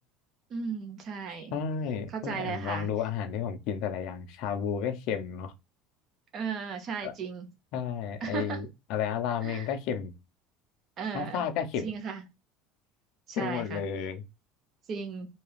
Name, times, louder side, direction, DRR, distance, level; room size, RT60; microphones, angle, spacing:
voice 1, 0.5-1.5 2.1-2.9 6.3-7.5 8.2-8.6 9.4-9.7 11.0-11.4 11.8-12.2 13.3-13.8 14.9-15.3, right 6 dB, 30° right, 0.7 m, -35 dB
voice 2, 1.3-5.5 7.0-7.1 7.7-10.1 11.1-11.9 13.4-14.2, left 7 dB, 50° left, 0.5 m, -32 dB
2.8 x 2.4 x 3.1 m
cardioid pair, 175°, 0 cm